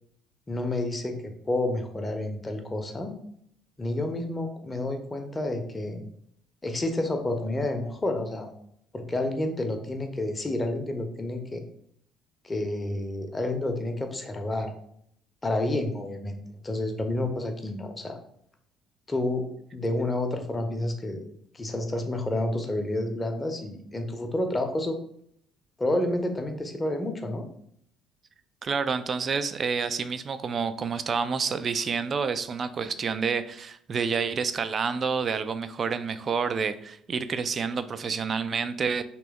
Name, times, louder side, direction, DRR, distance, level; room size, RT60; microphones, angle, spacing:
voice 1, 0.5-3.1 3.8-6.0 6.6-8.5 8.9-11.6 12.4-14.7 15.4-18.2 19.1-19.5 19.7-21.2 21.5-25.0 25.8-27.4, left 1 dB, 20° left, 5 dB, 0.7 m, -29 dB
voice 2, 28.6-39.0, right 5 dB, 35° right, 12 dB, 0.3 m, -28 dB
3.3 x 3.0 x 3.4 m, 0.69 s
figure-of-eight pair, 50°, 0 cm